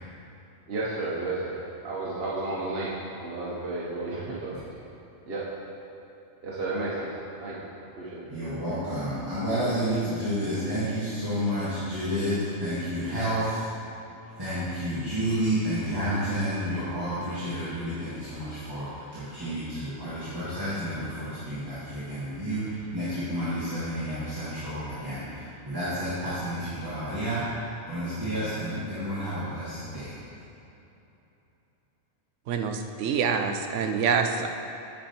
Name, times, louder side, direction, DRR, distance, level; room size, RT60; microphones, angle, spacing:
voice 1, 0.7-4.6 5.2-5.4 6.4-7.5 8.0-8.3, right 2 dB, 50° right, -7 dB, 1.2 m, -32 dB
voice 2, 8.3-13.7 14.4-27.4 27.9-30.2, equal, 20° right, -12 dB, 1.7 m, -30 dB
voice 3, 32.5-34.5, right 6 dB, 70° right, 6 dB, 0.9 m, -26 dB
8.9 x 5.4 x 4.3 m, 3.0 s
omnidirectional pair, 1.3 m